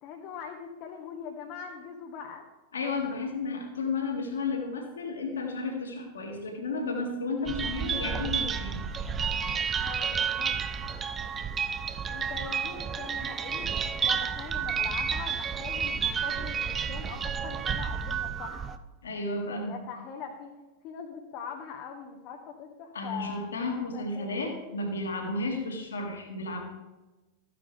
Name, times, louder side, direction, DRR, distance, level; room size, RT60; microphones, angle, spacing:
voice 1, 0.0-2.4 9.8-10.6 11.8-18.8 19.5-20.5 20.8-23.5 23.9-24.3, left 6 dB, 40° left, 3 dB, 1.3 m, -42 dB
voice 2, 2.7-8.9 19.0-19.9 22.9-26.6, left 3 dB, 70° left, 3 dB, 2.4 m, -33 dB
sound 1, 7.5-18.8, right 7 dB, 20° right, 0.7 m, -31 dB
14.5 x 9.8 x 3.5 m, 1.1 s
figure-of-eight pair, 90°, 0 cm